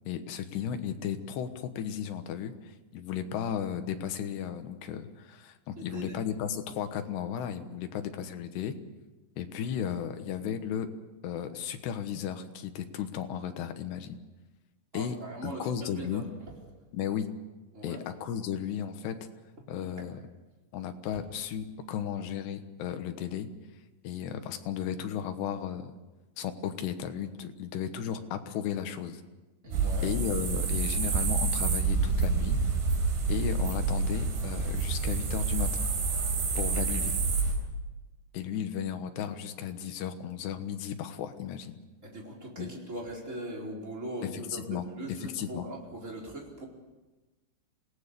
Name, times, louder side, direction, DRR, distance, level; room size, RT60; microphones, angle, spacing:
voice 1, 0.1-8.8 9.4-10.9 11.2-14.2 14.9-15.2 15.4-16.3 16.9-17.4 17.8-19.3 19.7-20.2 20.7-23.5 24.0-25.9 26.4-29.2 30.0-32.6 33.3-35.9 36.6-37.1 38.3-41.7 42.6-42.7 44.2-44.8 45.3-45.7, left 9 dB, 70° left, 8 dB, 3.2 m, -35 dB
voice 2, 5.7-6.2 14.9-16.3 17.7-18.0 20.0-20.1 21.1-21.2 29.6-30.1 42.0-46.6, right 1 dB, 15° right, -2 dB, 4.1 m, -40 dB
sound 1, 29.7-37.5, right 4 dB, 80° right, 6.1 m, -28 dB
27.0 x 18.0 x 6.8 m, 1.2 s
omnidirectional pair, 5.3 m